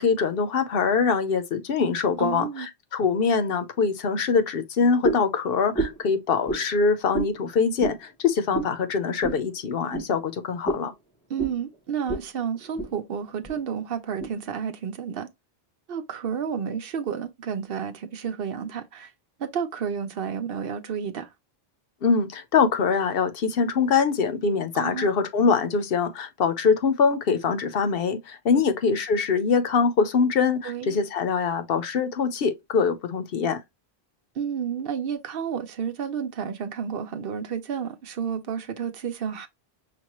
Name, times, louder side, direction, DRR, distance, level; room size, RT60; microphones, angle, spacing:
voice 1, 0.0-10.9 22.0-33.6, left 5 dB, 70° left, 0.9 m, -23 dB
voice 2, 2.2-2.7 11.3-15.3 15.9-19.1 19.4-21.3 24.7-25.1 30.6-31.0 34.4-39.5, right 7 dB, 70° right, 0.8 m, -31 dB
sound 1, 5.0-5.3 5.7-6.1 6.5-6.6 7.1-7.3 7.8-8.0 8.5-8.7 9.2-9.4 9.9-10.1 10.6-10.9 11.4-11.6 12.1-12.3 12.6-12.9 13.4-13.6 14.2-14.3, right 2 dB, 5° left, 0.8 m, -28 dB
5.9 x 2.3 x 2.9 m
omnidirectional pair, 1.0 m